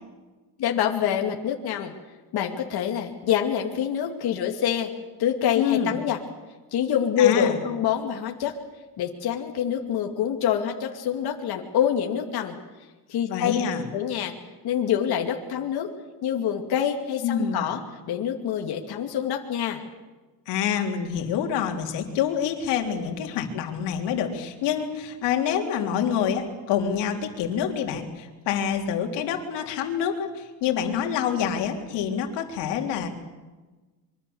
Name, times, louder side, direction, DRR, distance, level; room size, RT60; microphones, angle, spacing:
voice 1, 0.6-1.9 2.3-4.9 5.2-6.2 6.7-8.5 9.0-12.6 13.1-13.5 13.9-14.3 14.6-15.9 16.2-17.8 18.1-19.8, left 9 dB, 65° left, 2 dB, 2.6 m, -26 dB
voice 2, 5.6-6.0 7.2-7.6 13.2-13.9 17.2-17.7 20.5-33.1, left 8 dB, 90° left, 3 dB, 3.6 m, -27 dB
25.5 x 24.0 x 7.1 m, 1.2 s
cardioid pair, 120°, 40 cm